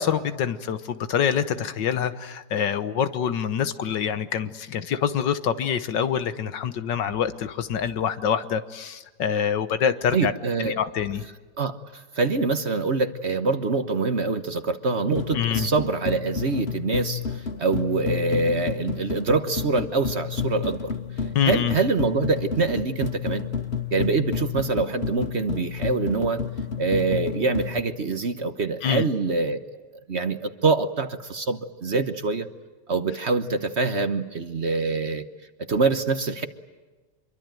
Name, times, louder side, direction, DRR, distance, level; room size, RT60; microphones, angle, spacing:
voice 1, 0.0-10.3 10.6-11.2 15.3-15.7 21.3-21.8 28.8-29.0, left 8 dB, 80° left, 12 dB, 1.8 m, -25 dB
voice 2, 10.1-10.8 11.6-20.9 21.5-23.5 23.9-26.4 26.8-29.8 30.1-32.5 32.9-35.2 35.7-36.5, right 4 dB, 45° right, 10 dB, 1.2 m, -25 dB
sound 1, 15.1-27.8, left 6 dB, 40° left, 1.3 m, -31 dB
26.0 x 23.5 x 9.2 m, 1.3 s
omnidirectional pair, 1.9 m